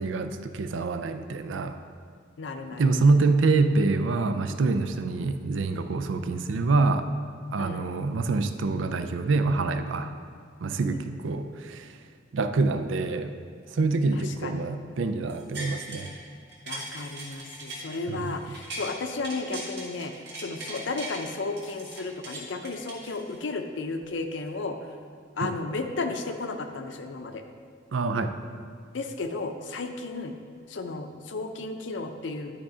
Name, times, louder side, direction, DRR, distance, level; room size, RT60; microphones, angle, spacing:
voice 1, 0.0-1.8 2.8-7.1 7.5-10.1 10.6-12.0 12.3-13.3 13.7-16.1 18.1-18.3 25.4-25.5 27.9-28.4, right 3 dB, 75° right, 8 dB, 0.4 m, -26 dB
voice 2, 2.4-2.8 7.6-7.9 10.8-11.0 14.1-14.7 16.7-24.8 25.4-27.4 28.9-30.4 30.7-32.5, left 3 dB, 70° left, 6 dB, 0.6 m, -34 dB
sound 1, 15.3-16.2 16.5-18.9 19.2-21.2 21.6-23.6 24.0-24.1, right 2 dB, 60° right, 1.7 m, -39 dB
11.0 x 3.7 x 4.9 m, 2.1 s
head